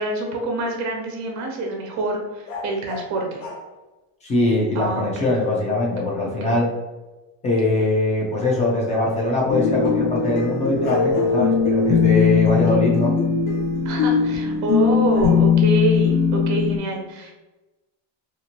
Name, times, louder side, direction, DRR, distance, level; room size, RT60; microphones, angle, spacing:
voice 1, 0.0-3.4 4.7-5.3 6.2-6.6 13.8-17.3, right 2 dB, 40° right, 1 dB, 0.7 m, -26 dB
sound 1, 1.3-1.6 2.4-3.7 5.6-5.7 10.8-11.8 12.6-14.4 15.1-15.4, left 3 dB, 80° left, 0.8 m, -38 dB
voice 2, 4.2-6.7 7.4-13.1, left 2 dB, 20° left, -2 dB, 0.3 m, -21 dB
sound 2, 9.5-16.8, left 6 dB, 50° left, 0.8 m, -19 dB
2.8 x 2.5 x 2.7 m, 1.1 s
cardioid pair, 155°, 44 cm